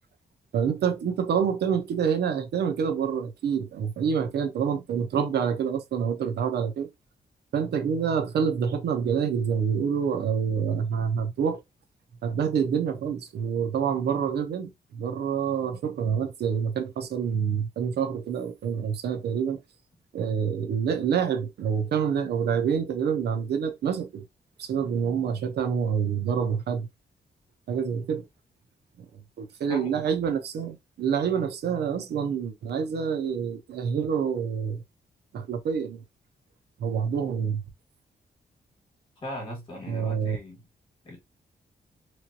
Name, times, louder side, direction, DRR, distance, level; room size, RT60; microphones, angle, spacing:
voice 1, 0.5-6.9 7.5-11.6 12.2-19.6 20.1-24.2 24.6-26.9 27.7-28.3 29.0-29.1 29.4-34.8 35.3-36.0 36.8-37.6 39.9-40.4, right 7 dB, 85° right, 0.7 m, -27 dB
voice 2, 29.7-30.0 39.2-40.6 41.0-41.2, equal, 30° left, 1.8 m, -38 dB
3.1 x 2.9 x 2.7 m
wide cardioid pair, 170°, 17 cm